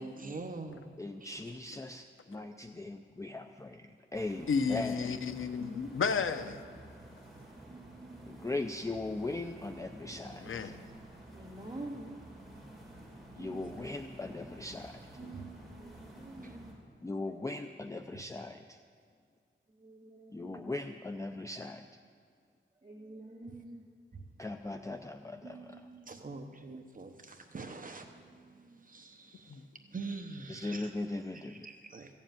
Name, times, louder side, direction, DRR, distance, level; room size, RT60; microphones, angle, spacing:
voice 1, 0.0-1.5 1.9-2.0 7.7-8.7 10.8-10.9 13.3-13.8 15.2-16.6 18.1-18.2 24.1-24.3 25.4-30.9 31.5-32.1, right 3 dB, 40° right, 0.9 m, -46 dB
voice 2, 1.0-5.1 8.2-10.7 13.4-15.0 17.0-18.7 20.3-21.9 24.4-25.8 30.5-31.7, left 2 dB, 15° left, 0.4 m, -39 dB
sound 1, 4.1-16.7, right 1 dB, ahead, 4.2 m, -51 dB
voice 3, 4.5-6.6 10.4-10.7 15.2-15.4 29.5-29.6, left 5 dB, 85° left, 0.7 m, -32 dB
voice 4, 11.3-12.1 15.8-16.7 19.7-20.6 22.8-23.8, right 1 dB, 20° right, 2.9 m, -46 dB
15.0 x 7.4 x 9.1 m
wide cardioid pair, 145°, 20 cm